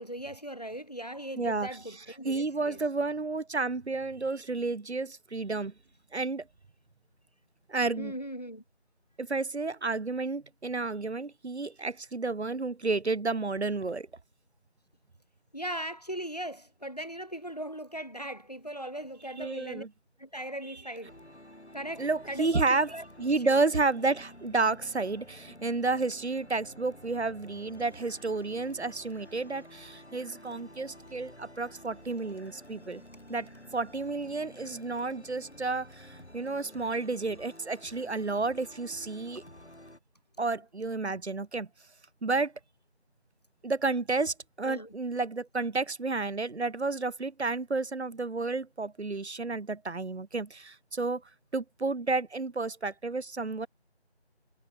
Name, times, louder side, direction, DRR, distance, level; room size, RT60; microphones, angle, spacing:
voice 1, 0.0-2.8 8.0-8.6 15.5-19.9 20.2-21.1 21.7-23.0 23.4-23.6 44.6-44.9, right 1 dB, 35° left, 0.9 m, -39 dB
voice 2, 1.4-1.7 2.2-5.7 6.1-6.4 7.7-8.1 9.2-14.1 19.4-19.9 22.0-22.9 23.2-33.0 33.3-39.4 40.4-41.7 42.2-42.5 43.6-51.2 51.5-53.7, right 3 dB, 75° right, 0.9 m, -31 dB
sound 1, 21.1-40.0, left 1 dB, 75° left, 6.9 m, -51 dB
figure-of-eight pair, 175°, 34 cm